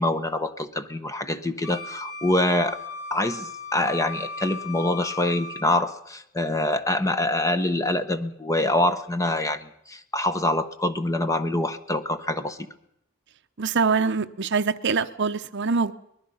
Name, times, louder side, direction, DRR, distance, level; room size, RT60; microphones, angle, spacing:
voice 1, 0.0-2.8 3.1-12.6, left 1 dB, 15° left, 10 dB, 1.0 m, -25 dB
Wind instrument woodwind instrument, 1.6-5.7, left 3 dB, 90° left, 4.1 m, -37 dB
voice 2, 13.6-15.9, right 5 dB, 55° right, 12 dB, 0.7 m, -24 dB
23.5 x 20.0 x 5.6 m, 0.77 s
head